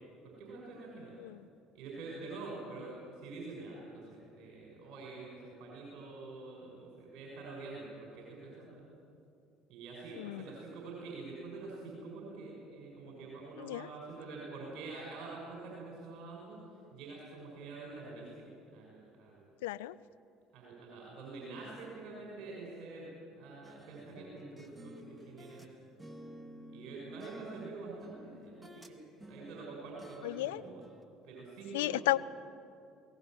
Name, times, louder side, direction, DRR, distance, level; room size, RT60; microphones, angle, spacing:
voice 1, 0.2-1.2 1.7-8.8 9.7-16.6 16.9-19.5 20.5-25.9 26.7-29.0 29.3-30.9 31.2-32.0, right 3 dB, 60° right, -3 dB, 5.9 m, -46 dB
voice 2, 19.6-19.9 30.2-30.6 31.7-32.2, left 17 dB, 75° left, 15 dB, 0.5 m, -33 dB
sound 1, 23.6-25.7 26.0-28.9 29.2-31.0, equal, 15° right, 2.3 m, -53 dB
22.5 x 17.5 x 9.1 m, 2.5 s
hypercardioid pair, 60°, 0 cm